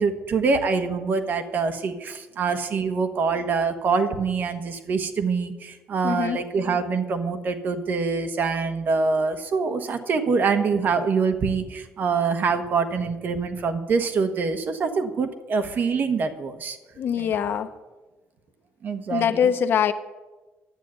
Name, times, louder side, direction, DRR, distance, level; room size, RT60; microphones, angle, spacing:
voice 1, 0.0-16.8 17.2-17.3 18.8-19.5, right 5 dB, 45° right, 8 dB, 1.3 m, -25 dB
voice 2, 6.0-6.4 17.0-17.7 19.1-19.9, left 8 dB, 55° left, 10 dB, 0.8 m, -23 dB
11.5 x 9.1 x 9.0 m, 1.2 s
cardioid pair, 145°, 5 cm